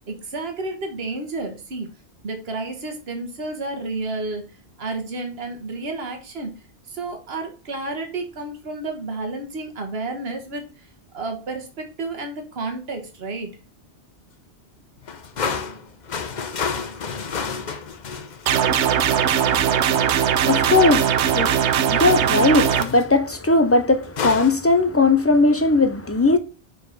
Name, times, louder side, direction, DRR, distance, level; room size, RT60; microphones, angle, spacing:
voice 1, 0.1-1.9 2.2-4.4 4.8-6.5 6.9-10.7 11.1-13.5, right 3 dB, 65° right, 1.6 m, -31 dB
sound 1, 15.0-19.0 19.5-19.7 21.9-22.4 22.7-23.1 24.1-24.6, left 5 dB, 45° left, 0.8 m, -30 dB
sound 2, 18.5-22.8, right 8 dB, 90° right, 1.0 m, -20 dB
voice 2, 18.6-26.4, left 3 dB, 20° left, 0.4 m, -20 dB
6.3 x 5.0 x 3.9 m
omnidirectional pair, 1.1 m